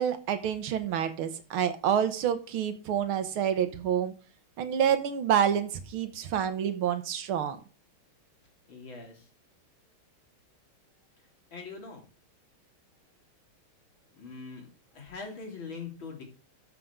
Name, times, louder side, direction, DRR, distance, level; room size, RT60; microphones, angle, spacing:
voice 1, 0.0-4.1 4.6-7.6, right 9 dB, 80° right, 10 dB, 1.9 m, -28 dB
voice 2, 8.7-9.3 11.5-12.0 14.2-14.7 14.9-16.2, left 4 dB, 65° left, 0 dB, 3.6 m, -42 dB
13.0 x 6.8 x 3.7 m, 0.36 s
omnidirectional pair, 2.3 m